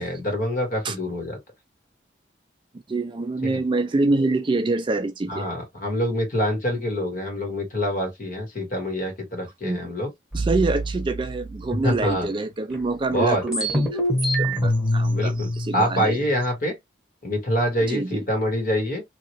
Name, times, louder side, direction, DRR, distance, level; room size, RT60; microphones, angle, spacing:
voice 1, 0.0-1.4 3.4-3.6 5.3-10.1 11.8-12.3 13.1-13.4 15.1-16.7 17.2-19.0, equal, 50° left, 1.6 m, -25 dB
voice 2, 2.9-5.5 9.6-9.9 10.3-14.0 14.4-16.2 17.9-18.2, right 3 dB, 30° right, 0.4 m, -26 dB
sound 1, 10.3-12.2 12.7-12.8 13.1-16.6, equal, 5° right, 1.2 m, -26 dB
3.1 x 2.7 x 2.8 m
head